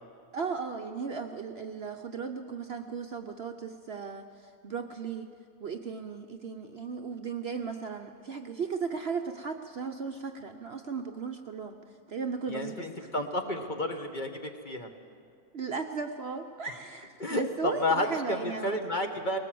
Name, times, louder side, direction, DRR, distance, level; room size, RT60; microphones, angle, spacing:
voice 1, 0.3-5.3 5.6-11.8 12.1-13.1 15.5-18.8, right 5 dB, 50° right, 5 dB, 0.9 m, -36 dB
voice 2, 12.5-14.9 17.2-19.4, left 1 dB, 35° left, 4 dB, 1.4 m, -31 dB
20.0 x 18.5 x 7.7 m, 2.3 s
omnidirectional pair, 1.6 m